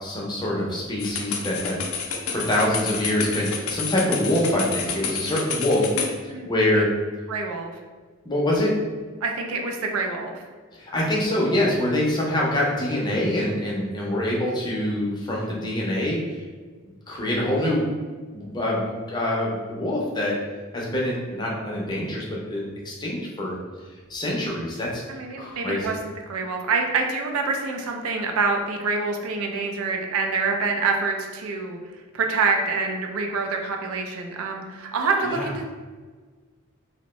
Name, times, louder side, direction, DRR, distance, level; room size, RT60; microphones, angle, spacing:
voice 1, 0.0-5.9 6.2-6.9 8.3-8.7 10.7-16.2 17.1-17.9 18.3-20.3 20.7-23.5 24.1-25.0 25.4-25.9 35.2-35.5, left 1 dB, 20° left, -3 dB, 0.5 m, -25 dB
sound 1, 1.0-6.1, left 6 dB, 85° left, 0.4 m, -30 dB
voice 2, 7.3-7.8 9.2-10.4 25.1-31.8 32.1-35.6, right 4 dB, 85° right, 3 dB, 0.4 m, -26 dB
2.6 x 2.1 x 3.0 m, 1.5 s
head